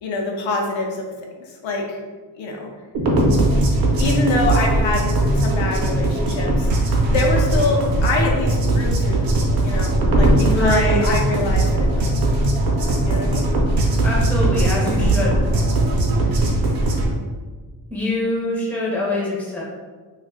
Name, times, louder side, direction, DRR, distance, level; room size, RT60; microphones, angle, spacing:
voice 1, 0.0-1.1 1.4-2.0 2.4-2.7 3.9-6.7 7.1-12.3 13.0-13.4 16.2-16.6, left 2 dB, 80° left, 1 dB, 0.7 m, -25 dB
sound 1, 2.9-17.1, right 1 dB, 50° right, 0.6 m, -19 dB
voice 2, 10.4-11.0 14.0-15.4 17.9-19.6, left 2 dB, 5° left, -5 dB, 0.5 m, -24 dB
2.4 x 2.3 x 3.5 m, 1.4 s
wide cardioid pair, 165°, 46 cm